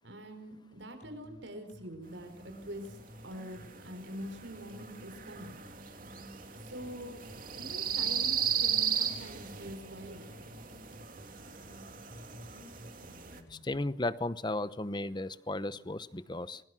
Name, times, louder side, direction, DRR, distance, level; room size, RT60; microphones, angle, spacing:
voice 1, 0.0-3.0 3.2-5.6 6.6-7.2 7.5-10.3, equal, 80° right, 7 dB, 5.1 m, -45 dB
sound 1, 1.0-13.8, equal, 45° left, 4.8 m, -53 dB
sound 2, 2.6-13.4, right 7 dB, 50° right, 2.9 m, -36 dB
voice 2, 13.5-16.6, left 2 dB, 25° left, 15 dB, 0.9 m, -35 dB
27.5 x 22.5 x 6.3 m, 0.66 s
head